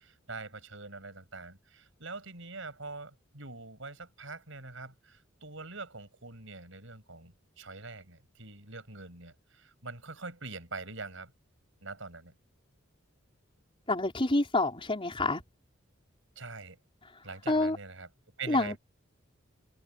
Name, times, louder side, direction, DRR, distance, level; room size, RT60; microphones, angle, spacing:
voice 1, 0.0-11.3 11.8-12.3 16.4-16.8 17.2-18.1 18.4-18.8, right 3 dB, 70° right, 7.7 m, -44 dB
voice 2, 13.9-15.4 17.5-17.8 18.5-18.8, left 2 dB, 25° left, 4.6 m, -27 dB
open air
head